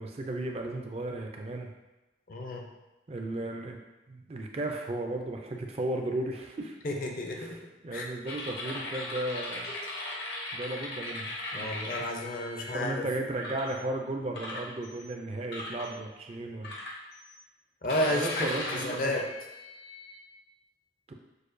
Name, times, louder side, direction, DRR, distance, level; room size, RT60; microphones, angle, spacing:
voice 1, 0.0-1.7 3.1-3.8 4.1-6.8 7.4-9.7 10.5-12.1 12.7-16.7 18.0-19.1 21.1-21.2, right 2 dB, 35° right, 2 dB, 0.4 m, -35 dB
voice 2, 2.3-2.7 6.8-7.6 7.9-8.0 11.5-13.1 17.8-19.2, left 1 dB, 50° left, 1 dB, 0.5 m, -31 dB
sound 1, 8.3-12.8 13.4-13.8 14.3-15.1 15.5-15.9 16.6-17.4 17.9-20.2, left 2 dB, 70° left, 0.9 m, -38 dB
6.5 x 2.2 x 2.6 m, 1.1 s
head